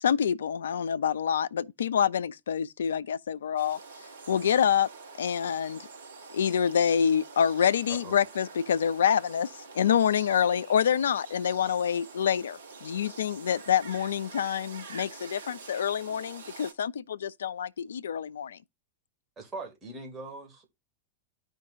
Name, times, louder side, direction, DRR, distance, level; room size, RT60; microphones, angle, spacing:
voice 1, 0.0-3.8 4.3-4.9 5.2-5.9 6.3-18.6, left 8 dB, 65° left, 0.3 m, -27 dB
sound 1, 3.6-16.7, right 4 dB, 60° right, 1.4 m, -47 dB
voice 2, 7.9-8.2 19.4-20.7, right 3 dB, 20° right, 2.1 m, -41 dB
13.0 x 5.1 x 2.5 m
figure-of-eight pair, 90°, 0 cm